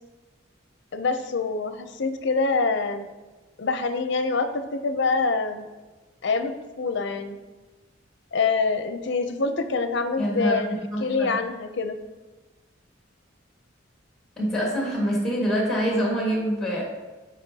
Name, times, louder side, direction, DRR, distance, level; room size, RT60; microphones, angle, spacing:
voice 1, 0.9-3.1 3.6-5.7 6.2-6.5 6.8-7.4 8.3-10.7 11.0-12.0, left 4 dB, 60° left, 8 dB, 0.6 m, -25 dB
voice 2, 10.2-11.4 14.4-16.8, equal, ahead, -3 dB, 1.8 m, -25 dB
9.0 x 5.2 x 2.8 m, 1.2 s
head